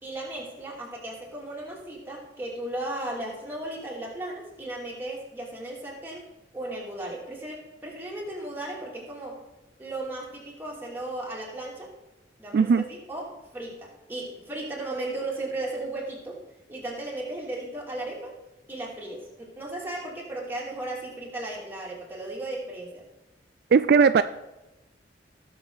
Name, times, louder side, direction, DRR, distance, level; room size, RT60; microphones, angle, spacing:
voice 1, 0.0-6.2 6.5-9.4 9.8-11.9 12.4-16.4 16.7-18.3 18.7-23.1, right 2 dB, 10° right, -4 dB, 2.7 m, -36 dB
voice 2, 12.5-12.8 23.7-24.2, right 5 dB, 60° right, 12 dB, 0.3 m, -18 dB
18.0 x 6.4 x 4.0 m, 0.99 s
head